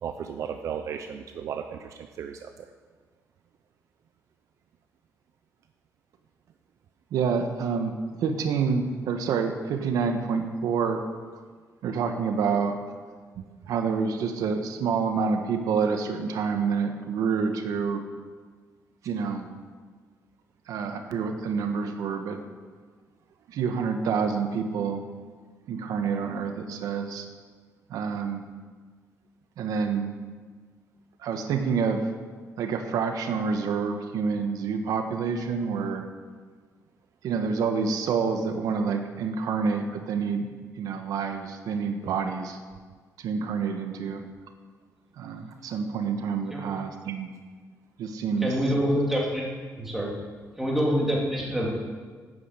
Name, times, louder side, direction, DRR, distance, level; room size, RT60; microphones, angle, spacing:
voice 1, 0.0-2.5 42.0-42.1, right 8 dB, 60° right, 7 dB, 0.7 m, -35 dB
voice 2, 7.1-11.0 11.8-12.8 13.7-18.0 19.0-19.5 20.7-22.4 23.5-25.0 25.7-27.2 27.9-28.4 29.6-30.1 31.2-32.1 32.6-36.0 37.2-40.5 40.8-42.6 43.2-44.2 45.2-47.3 48.0-48.5, right 5 dB, 80° right, 6 dB, 1.3 m, -28 dB
voice 3, 48.4-49.4 49.8-50.1 50.6-51.8, equal, 5° right, -3 dB, 3.0 m, -25 dB
12.0 x 9.4 x 8.4 m, 1.5 s
cardioid pair, 160°, 6 cm